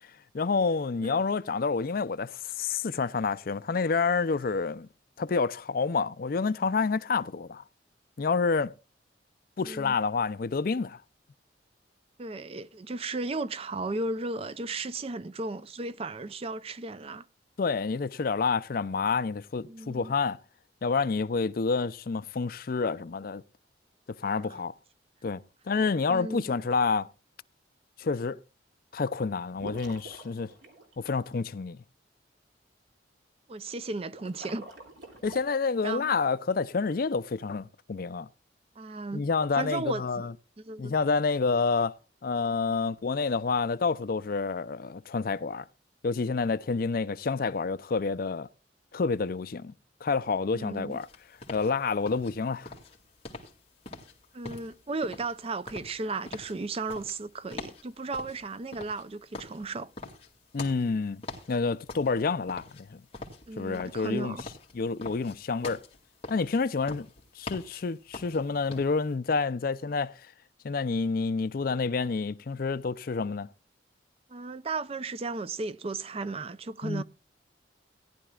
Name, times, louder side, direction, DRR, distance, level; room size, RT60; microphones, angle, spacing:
voice 1, 0.3-4.9 5.2-7.6 8.2-8.7 9.6-11.0 17.6-20.4 20.8-23.4 24.1-24.7 25.2-25.4 25.7-27.1 28.0-28.4 28.9-30.5 31.0-31.8 35.2-38.3 39.1-40.3 40.8-41.9 42.2-45.7 46.0-48.5 48.9-49.7 50.0-51.1 51.5-52.7 60.5-61.2 61.5-63.0 63.6-64.4 64.7-65.8 66.3-67.1 67.4-70.2 70.6-73.5 76.8-77.0, left 4 dB, 50° left, 0.4 m, -28 dB
voice 2, 9.6-10.0 12.2-17.3 19.7-20.1 24.2-24.6 26.1-26.5 33.5-34.6 35.8-36.1 38.8-39.2 39.5-40.0 40.6-40.9 50.5-51.0 54.3-59.9 63.5-64.4 74.3-77.0, right 3 dB, 30° right, 0.4 m, -35 dB
sound 1, 29.5-31.4 34.0-35.4, right 1 dB, 80° right, 3.1 m, -46 dB
sound 2, 50.9-69.1, left 3 dB, 30° left, 2.3 m, -44 dB
17.5 x 11.0 x 2.3 m
head